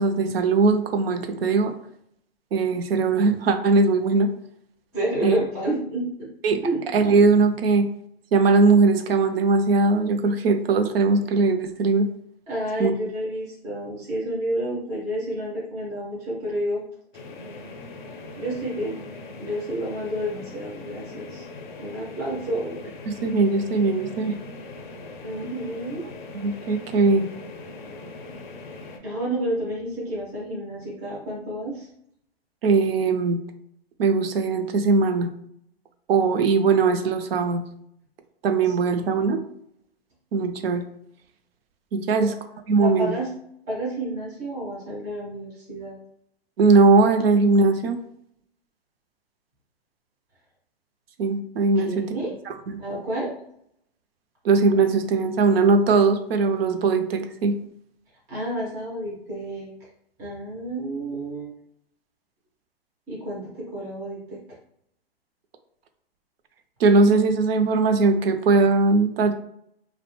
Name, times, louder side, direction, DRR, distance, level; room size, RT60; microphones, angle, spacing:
voice 1, 0.0-1.7 2.5-4.3 5.2-5.4 6.4-6.6 6.9-7.9 8.3-12.1 12.8-12.9 23.1-24.3 26.3-27.3 32.6-33.4 34.0-35.3 36.1-37.6 38.4-39.4 40.3-40.8 41.9-42.3 42.7-43.1 46.6-48.0 51.2-52.0 52.5-52.8 54.4-57.5 66.8-69.3, right 3 dB, 70° right, 7 dB, 0.5 m, -20 dB
voice 2, 4.9-6.3 6.6-6.8 12.5-16.8 18.4-19.0 19.4-21.4 21.8-22.8 25.2-26.1 29.0-31.9 38.6-38.8 39.1-39.2 42.8-43.3 43.7-46.0 51.8-52.3 52.8-53.3 58.3-59.7 60.2-61.5 63.1-64.4, right 1 dB, 10° right, -6 dB, 0.3 m, -30 dB
sound 1, 17.1-29.0, left 3 dB, 50° left, 0.5 m, -40 dB
2.5 x 2.1 x 2.9 m, 0.71 s
hypercardioid pair, 145°, 31 cm